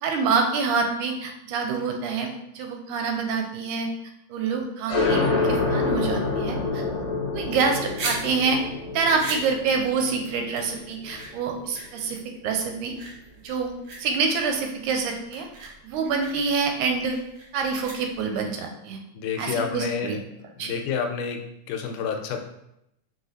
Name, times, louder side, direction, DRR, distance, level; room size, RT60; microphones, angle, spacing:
voice 1, 0.0-2.3 2.6-3.9 4.3-6.8 7.3-8.6 8.9-12.9 13.4-13.7 14.0-17.2 17.5-19.0 19.4-20.2 20.6-20.7, right 5 dB, 85° right, 3 dB, 2.0 m, -26 dB
sound 1, 4.9-12.1, left 3 dB, 55° left, 1.4 m, -27 dB
sound 2, 7.9-18.5, right 2 dB, 60° right, 1.6 m, -39 dB
voice 2, 19.2-20.2 20.6-21.4 21.7-22.4, left 6 dB, 85° left, 4 dB, 2.1 m, -29 dB
4.9 x 3.9 x 2.8 m, 0.82 s
omnidirectional pair, 3.6 m